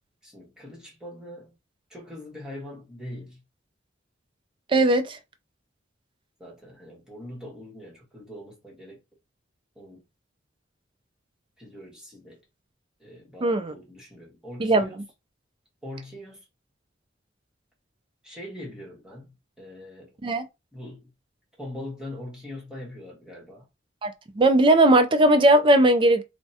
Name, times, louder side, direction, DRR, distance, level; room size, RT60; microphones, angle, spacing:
voice 1, 0.2-1.5 1.9-3.4 6.4-9.0 9.7-10.0 11.6-12.4 13.0-15.0 15.8-16.4 18.2-20.1 20.7-21.1 21.6-23.7, left 1 dB, 5° right, 1.1 m, -42 dB
voice 2, 4.7-5.2 13.4-13.7 14.6-14.9 20.2-20.4 24.0-26.2, right 1 dB, 25° right, 0.4 m, -18 dB
3.5 x 2.1 x 2.7 m
head